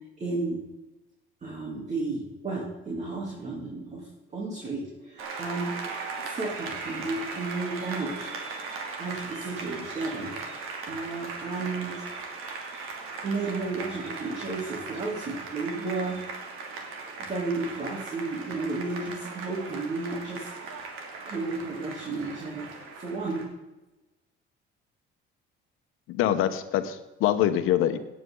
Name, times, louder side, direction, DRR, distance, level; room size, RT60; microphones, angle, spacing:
voice 1, 0.2-0.6 1.4-4.1 4.3-8.3 9.0-10.3 10.9-12.0 13.2-16.2 17.2-20.5 20.7-20.8 21.2-22.7 23.0-23.5, right 3 dB, 35° right, -3 dB, 3.3 m, -33 dB
Applause, 5.2-23.5, right 4 dB, 85° right, 2.7 m, -38 dB
voice 2, 26.1-28.0, left 11 dB, 85° left, 9 dB, 1.2 m, -24 dB
17.5 x 9.2 x 3.9 m, 1.0 s
cardioid pair, 125°, 21 cm